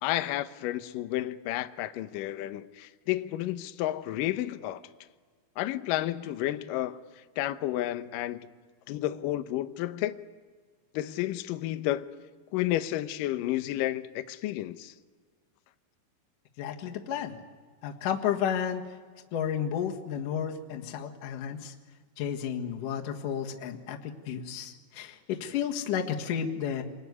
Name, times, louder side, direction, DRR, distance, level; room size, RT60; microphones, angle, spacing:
voice 1, 0.0-4.8 5.6-7.0 7.4-8.4 8.9-10.2 10.9-12.1 12.5-14.9, left 14 dB, 80° left, 10 dB, 1.9 m, -31 dB
voice 2, 16.6-17.4 17.8-18.8 19.3-21.7 22.2-26.8, left 8 dB, 55° left, 2 dB, 2.9 m, -32 dB
27.5 x 21.5 x 9.5 m, 1.5 s
omnidirectional pair, 5.0 m